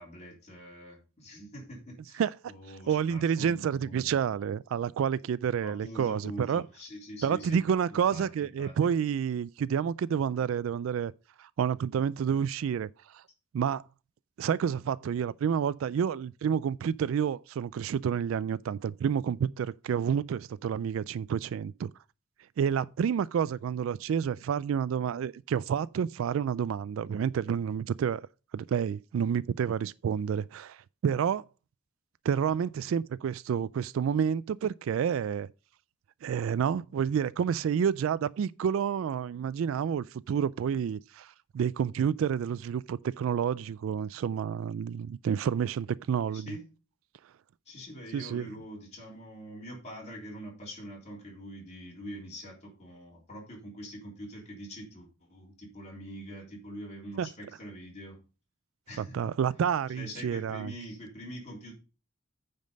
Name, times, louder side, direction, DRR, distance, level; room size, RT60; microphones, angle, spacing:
voice 1, 0.0-4.2 5.6-7.6 7.9-8.7 46.3-46.7 47.7-58.2 58.9-59.3 59.9-61.7, equal, 35° left, 3.7 m, -44 dB
voice 2, 2.1-2.5 2.9-6.6 7.2-11.1 11.4-13.2 13.5-13.8 14.4-21.9 22.6-28.2 28.5-31.4 32.2-35.5 36.2-46.6 48.1-48.5 57.2-57.3 59.0-60.7, right 7 dB, 70° right, 0.3 m, -29 dB
9.2 x 5.3 x 5.2 m
head